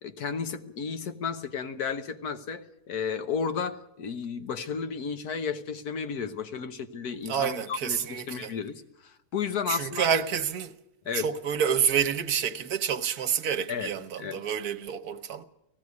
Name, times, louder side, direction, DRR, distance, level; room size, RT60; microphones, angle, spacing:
voice 1, 0.0-10.2 11.0-11.3 13.7-13.9 14.2-14.4, left 6 dB, 80° left, 1.6 m, -33 dB
voice 2, 7.3-8.6 9.7-10.8 11.1-15.4, right 8 dB, 75° right, 1.4 m, -28 dB
18.0 x 15.5 x 9.5 m
omnidirectional pair, 1.6 m